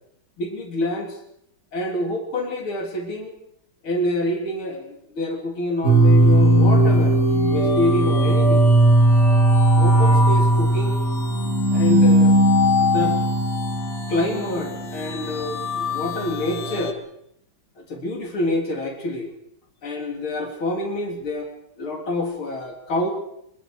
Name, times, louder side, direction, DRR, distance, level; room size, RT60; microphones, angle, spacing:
voice 1, 0.4-1.2 1.7-3.3 3.8-7.2 7.5-8.7 9.8-11.0 11.7-12.4 12.8-13.2 14.1-17.0 17.8-19.3 19.8-23.1, left 1 dB, 85° left, 1 dB, 4.4 m, -27 dB
sound 1, 5.8-16.9, right 1 dB, 40° left, 3.6 m, -18 dB
27.0 x 24.0 x 4.9 m, 0.76 s
omnidirectional pair, 2.3 m